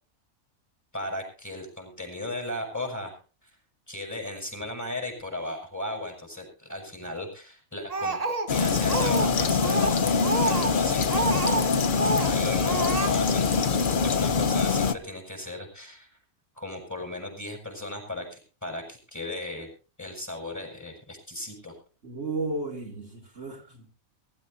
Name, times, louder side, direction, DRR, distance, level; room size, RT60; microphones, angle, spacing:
voice 1, 0.9-3.5 3.9-8.2 8.5-11.3 12.0-16.2 16.5-19.7 20.0-21.7, left 1 dB, 10° left, 3 dB, 6.8 m, -36 dB
Speech, 7.9-9.3 9.6-11.7 11.9-12.4 12.6-13.1, right 3 dB, 30° right, 1.2 m, -28 dB
sound 1, 8.5-14.9, left 5 dB, 45° left, 0.9 m, -24 dB
voice 2, 22.0-23.9, right 2 dB, 55° right, -1 dB, 3.2 m, -33 dB
23.0 x 13.0 x 2.8 m, 0.37 s
omnidirectional pair, 1.4 m